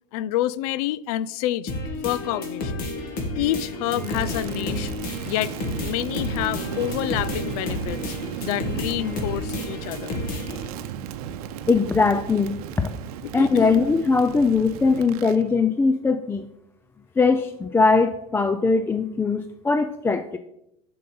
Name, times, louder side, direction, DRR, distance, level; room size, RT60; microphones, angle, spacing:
voice 1, 0.1-1.7 2.0-2.9 3.4-4.9 5.3-5.6 5.8-8.1 8.4-10.1 13.2-13.8, left 14 dB, 80° left, 0.4 m, -28 dB
sound 1, 1.7-10.7, left 2 dB, 50° left, 2.1 m, -31 dB
Crackle, 3.8-15.4, right 9 dB, 90° right, 0.8 m, -35 dB
voice 2, 11.7-12.9 13.3-16.5 17.2-20.4, left 4 dB, 10° left, 0.4 m, -21 dB
7.6 x 6.9 x 5.3 m
supercardioid pair, 135°, 19 cm